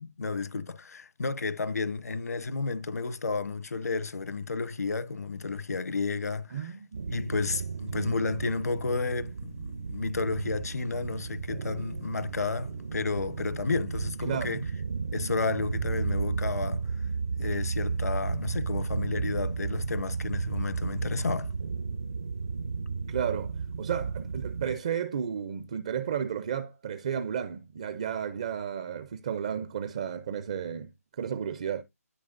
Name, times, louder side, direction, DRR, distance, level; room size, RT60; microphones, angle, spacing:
voice 1, 0.2-6.7 7.1-14.6 15.1-16.8 17.4-21.5, left 4 dB, 75° left, 1.1 m, -32 dB
voice 2, 6.5-7.1 7.9-8.2 14.2-14.6 23.1-31.8, right 8 dB, 25° right, 0.4 m, -33 dB
sound 1, 6.9-24.8, right 5 dB, 60° right, 0.7 m, -33 dB
13.0 x 5.0 x 2.5 m
hypercardioid pair, 170°, 9 cm